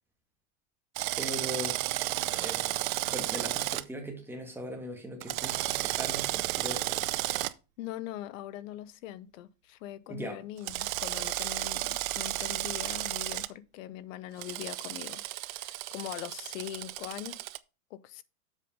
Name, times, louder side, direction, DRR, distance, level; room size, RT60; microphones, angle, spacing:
Drill, 1.0-3.8 5.2-7.5 10.7-13.5 14.4-17.6, right 17 dB, 75° right, 0.6 m, -33 dB
voice 1, 1.2-1.8 2.3-7.0 10.1-10.4, right 1 dB, 5° right, 1.9 m, -40 dB
voice 2, 7.8-15.2 15.5-17.3 17.9-18.2, left 13 dB, 70° left, 0.8 m, -41 dB
7.5 x 5.0 x 5.3 m
supercardioid pair, 135°, 41 cm